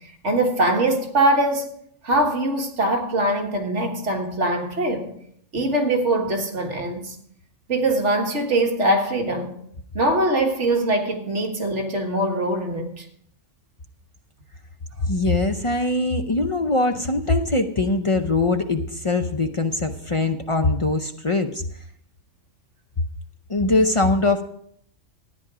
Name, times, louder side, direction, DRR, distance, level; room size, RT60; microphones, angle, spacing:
voice 1, 0.2-1.7 2.0-5.1 5.5-7.2 7.7-9.6 10.0-13.0, right 1 dB, 65° right, 1.9 m, -22 dB
voice 2, 15.0-21.6 23.5-24.4, left 2 dB, 35° left, 0.5 m, -22 dB
13.5 x 9.8 x 4.9 m
omnidirectional pair, 1.3 m